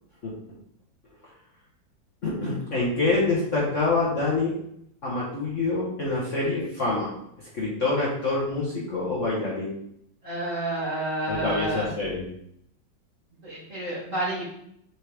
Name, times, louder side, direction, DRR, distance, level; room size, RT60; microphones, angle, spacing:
voice 1, 2.2-4.5 5.0-7.1 7.5-9.8 11.3-12.3, left 3 dB, 40° left, -5 dB, 1.5 m, -26 dB
voice 2, 10.2-11.9 13.4-14.4, right 1 dB, 40° right, -9 dB, 2.4 m, -29 dB
7.7 x 4.4 x 3.5 m, 0.74 s
omnidirectional pair, 2.1 m